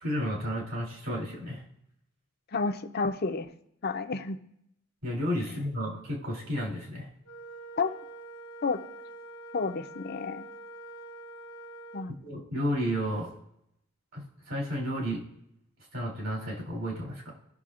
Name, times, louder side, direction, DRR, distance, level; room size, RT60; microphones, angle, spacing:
voice 1, 0.0-1.6 5.0-7.1 12.2-13.3 14.1-15.2 15.9-17.3, equal, 70° right, -2 dB, 3.1 m, -32 dB
voice 2, 2.5-3.5 3.8-4.4 7.8-7.9 8.6-8.8 9.5-10.5 11.9-12.1, left 4 dB, 45° left, 8 dB, 0.6 m, -30 dB
Wind instrument woodwind instrument, 7.2-12.1, right 1 dB, 75° left, 1.2 m, -45 dB
19.0 x 6.4 x 2.5 m, 0.77 s
head